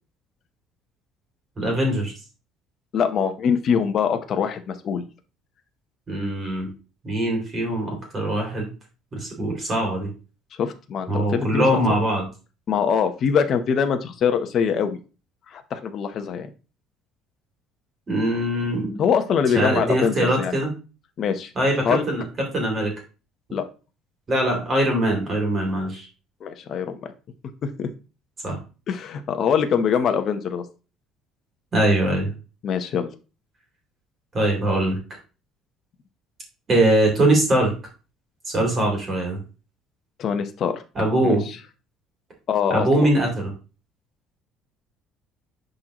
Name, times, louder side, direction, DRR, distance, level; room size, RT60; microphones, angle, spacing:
voice 1, 1.6-2.1 6.1-6.7 7.0-8.7 9.1-10.1 11.1-12.2 18.1-19.0 19.5-20.7 21.5-22.2 22.5-22.9 24.3-26.1 28.4-28.6 31.7-32.3 34.3-35.0 36.7-37.7 38.5-39.4 40.9-41.4 42.7-43.5, right 1 dB, 25° right, 1 dB, 2.5 m, -22 dB
voice 2, 2.9-5.0 10.6-12.0 12.7-15.0 15.5-16.5 19.0-20.5 21.2-21.5 21.8-22.0 23.5-23.7 26.4-27.1 27.6-27.9 28.9-30.6 32.6-33.1 40.2-40.8 41.2-41.4 42.5-43.1, left 7 dB, 35° left, 7 dB, 0.8 m, -23 dB
10.5 x 3.9 x 3.0 m, 0.32 s
cardioid pair, 175°, 0 cm